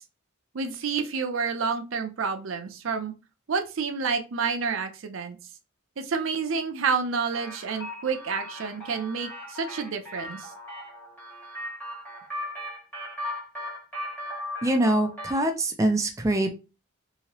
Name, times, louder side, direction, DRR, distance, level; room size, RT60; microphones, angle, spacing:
voice 1, 0.5-3.1 3.5-5.4 6.0-10.5, right 5 dB, 70° right, 6 dB, 0.5 m, -29 dB
sound 1, 7.3-15.5, left 1 dB, 10° left, 1.1 m, -38 dB
voice 2, 14.6-16.5, right 1 dB, 15° right, 5 dB, 0.3 m, -24 dB
2.9 x 2.7 x 2.9 m, 0.30 s
head